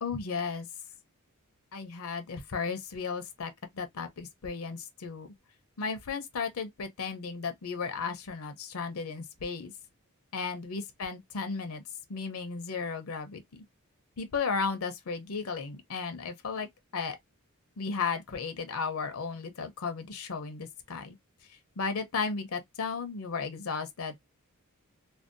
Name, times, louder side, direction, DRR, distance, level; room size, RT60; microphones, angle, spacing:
voice 1, 0.0-0.7 1.7-5.3 5.8-9.7 10.3-11.8 12.1-13.6 14.2-17.2 17.8-21.2 21.5-24.1, left 5 dB, 70° left, 0.6 m, -35 dB
2.6 x 2.0 x 2.5 m
head